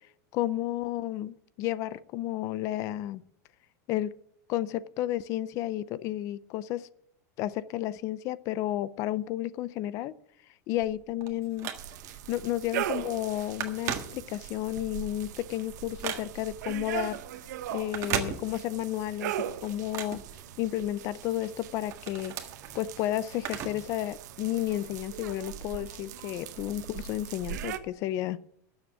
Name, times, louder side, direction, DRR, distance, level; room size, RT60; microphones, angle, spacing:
voice 1, 0.3-3.2 3.9-4.2 4.5-6.9 7.4-10.1 10.7-11.7 12.3-17.2 17.7-20.2 20.6-22.3 22.7-28.4, left 13 dB, 35° left, 0.5 m, -32 dB
Telephone, 10.8-12.2 12.7-12.9 13.2-14.7 15.1-16.6 17.8-18.9 19.2-21.0 21.4-24.0 24.2-24.3 25.2-25.3, right 9 dB, 35° right, 1.6 m, -37 dB
sound 1, 11.7-27.8, right 11 dB, 75° right, 1.2 m, -40 dB
12.5 x 7.3 x 9.9 m
supercardioid pair, 170°, 9 cm